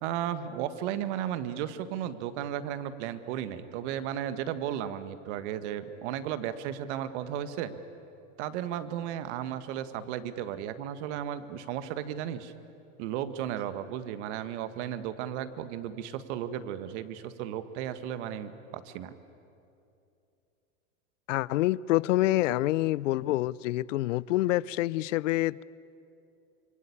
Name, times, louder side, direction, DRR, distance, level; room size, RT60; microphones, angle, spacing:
voice 1, 0.0-7.8 8.4-12.5 13.0-19.1, right 10 dB, 65° right, 1.8 m, -34 dB
voice 2, 21.3-25.6, left 16 dB, 75° left, 0.7 m, -27 dB
27.0 x 23.5 x 8.7 m
hypercardioid pair, 110°, 38 cm